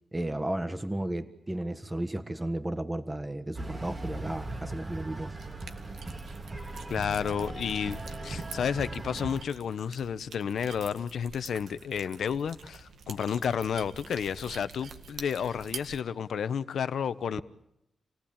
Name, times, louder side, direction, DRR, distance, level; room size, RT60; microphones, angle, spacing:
voice 1, 0.1-5.3, right 1 dB, 15° right, 1.5 m, -33 dB
sound 1, 3.5-9.4, right 2 dB, 30° right, 2.0 m, -39 dB
sound 2, 5.4-16.0, right 5 dB, 80° right, 1.9 m, -47 dB
voice 2, 6.9-17.4, left 7 dB, 80° left, 1.0 m, -31 dB
28.0 x 18.0 x 8.8 m
cardioid pair, 100°, 0 cm